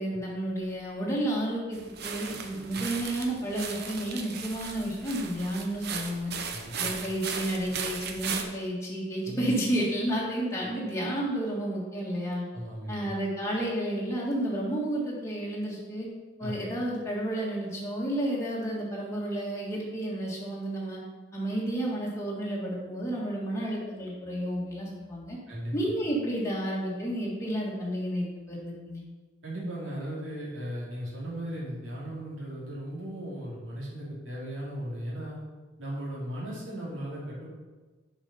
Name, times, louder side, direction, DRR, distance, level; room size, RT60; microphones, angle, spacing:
voice 1, 0.0-6.3 6.8-12.4 12.9-16.1 16.4-21.0 21.3-25.4 25.7-29.0, right 1 dB, 15° left, -5 dB, 1.6 m, -31 dB
sound 1, 1.7-8.4, right 6 dB, 50° right, 0.7 m, -37 dB
voice 2, 6.5-6.9 9.3-9.5 12.5-13.0 16.4-16.5 25.5-25.7 29.4-35.4 35.8-37.5, right 1 dB, 70° right, -6 dB, 2.7 m, -37 dB
7.0 x 5.5 x 5.5 m, 1.3 s
head